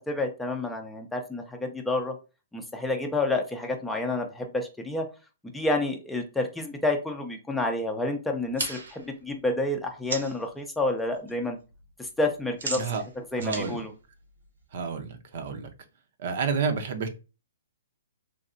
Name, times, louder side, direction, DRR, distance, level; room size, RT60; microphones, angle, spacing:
voice 1, 0.1-2.1 2.5-5.1 5.4-11.6 12.0-12.9 13.3-13.9, left 2 dB, 5° left, 3 dB, 0.6 m, -29 dB
sound 1, 8.4-10.5 10.9-11.3 11.6-14.8, right 3 dB, 80° right, 1.0 m, -37 dB
voice 2, 13.4-13.8 14.7-15.7 16.2-17.1, right 5 dB, 55° right, 7 dB, 0.7 m, -30 dB
3.2 x 2.6 x 2.6 m, 0.30 s
hypercardioid pair, 130°, 0 cm